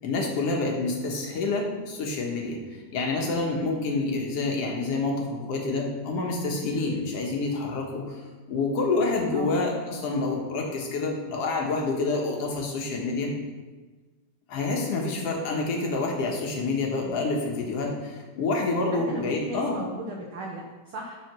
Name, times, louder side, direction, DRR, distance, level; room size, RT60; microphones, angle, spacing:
voice 1, 0.0-2.6 2.9-8.2 8.5-13.3 14.5-19.8, left 3 dB, 55° left, -1 dB, 2.2 m, -28 dB
voice 2, 9.3-9.6 18.9-21.2, right 1 dB, 70° right, -1 dB, 1.2 m, -37 dB
12.0 x 4.3 x 6.2 m, 1.3 s
omnidirectional pair, 3.6 m